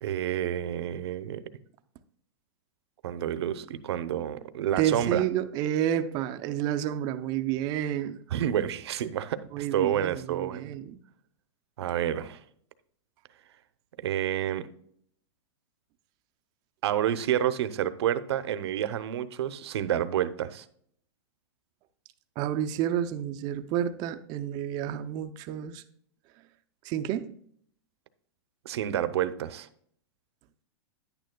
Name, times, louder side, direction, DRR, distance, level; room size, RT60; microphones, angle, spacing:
voice 1, 0.0-1.4 3.0-5.2 8.3-10.7 11.8-12.4 14.0-14.7 16.8-20.6 28.6-29.7, right 10 dB, 70° right, 0.7 m, -29 dB
voice 2, 4.8-8.2 9.5-11.0 22.4-25.8 26.8-27.3, right 10 dB, 30° right, 0.5 m, -30 dB
10.0 x 9.1 x 2.2 m
supercardioid pair, 155°, 14 cm